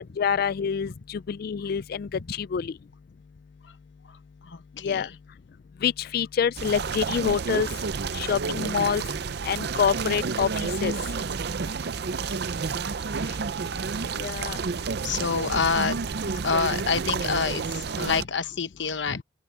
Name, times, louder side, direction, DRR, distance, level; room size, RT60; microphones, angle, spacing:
voice 1, 0.0-2.7 4.8-5.1 5.8-7.7 8.1-9.0 9.4-10.9 14.2-14.6, left 7 dB, 50° left, 0.3 m, -26 dB
voice 2, 4.4-5.1 13.0-13.4 14.5-14.6 15.0-19.2, left 5 dB, 70° left, 1.0 m, -28 dB
sound 1, 6.6-18.2, right 5 dB, 60° right, 0.6 m, -30 dB
open air
head